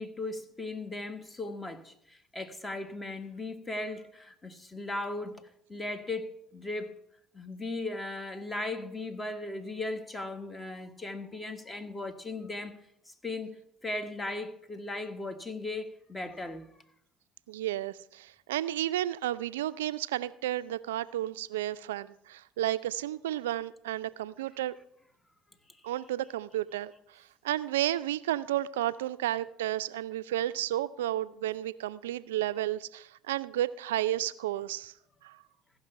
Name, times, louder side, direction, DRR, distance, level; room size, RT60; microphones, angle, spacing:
voice 1, 0.0-7.0 7.3-12.7 13.1-16.7, left 2 dB, 25° left, 1.3 m, -37 dB
voice 2, 17.5-24.8 25.8-34.9 35.2-35.4, right 13 dB, 85° right, 0.3 m, -32 dB
15.0 x 5.9 x 5.6 m
hypercardioid pair, 65°, 0 cm